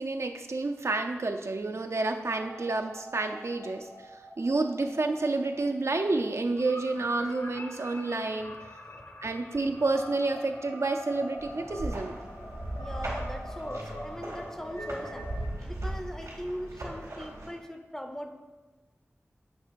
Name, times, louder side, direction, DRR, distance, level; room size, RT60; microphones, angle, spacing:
voice 1, 0.0-3.9 4.4-8.6 9.2-12.2, right 3 dB, 65° right, 5 dB, 0.6 m, -29 dB
sound 1, 2.2-15.5, equal, 50° left, 1.0 m, -44 dB
voice 2, 8.8-9.2 12.8-18.4, equal, 10° left, 6 dB, 0.6 m, -40 dB
sound 2, 11.4-17.5, right 1 dB, 90° right, 2.2 m, -38 dB
8.1 x 3.4 x 6.3 m, 1.2 s
wide cardioid pair, 60°, 5 cm